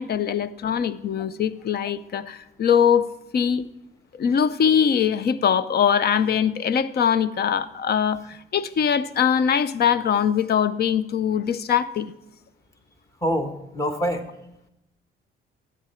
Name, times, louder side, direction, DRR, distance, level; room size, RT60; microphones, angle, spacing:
voice 1, 0.0-3.7 4.1-12.1, left 8 dB, 55° left, 0.6 m, -22 dB
voice 2, 13.2-14.2, equal, 15° left, 1.2 m, -25 dB
13.0 x 8.7 x 4.4 m
cardioid pair, 90°, 20 cm